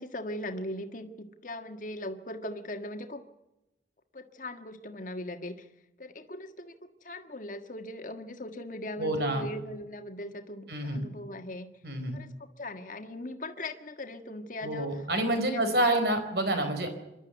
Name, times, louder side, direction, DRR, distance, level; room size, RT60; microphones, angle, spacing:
voice 1, 0.0-3.2 4.1-5.7 6.0-11.7 12.1-16.0, left 1 dB, 45° left, 6 dB, 1.6 m, -40 dB
voice 2, 9.0-9.4 10.7-11.0 11.8-12.2 14.6-16.9, right 1 dB, 65° right, 7 dB, 4.3 m, -28 dB
26.5 x 12.0 x 8.1 m, 0.94 s
head